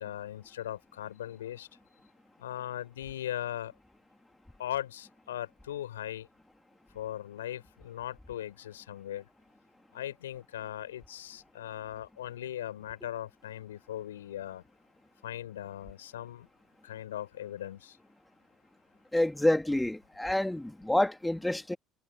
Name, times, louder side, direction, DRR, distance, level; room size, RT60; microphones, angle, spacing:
voice 1, 0.0-1.7 2.4-3.7 4.6-6.3 6.9-9.3 9.9-14.6 15.2-16.5 16.8-18.0, left 12 dB, 80° left, 4.8 m, -39 dB
voice 2, 19.1-21.8, left 1 dB, 5° left, 2.4 m, -28 dB
figure-of-eight pair, 55°, 0 cm